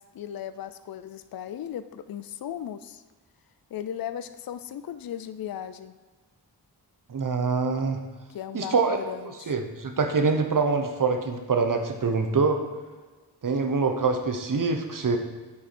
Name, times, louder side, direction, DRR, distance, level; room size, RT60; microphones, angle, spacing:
voice 1, 0.1-3.0 3.7-5.9 8.3-9.5, left 10 dB, 60° left, 11 dB, 0.5 m, -37 dB
voice 2, 7.1-8.0 8.5-9.0 9.5-12.6 13.4-15.2, right 4 dB, 50° right, 5 dB, 0.9 m, -25 dB
8.5 x 4.6 x 4.3 m, 1.3 s
cardioid pair, 55°, 41 cm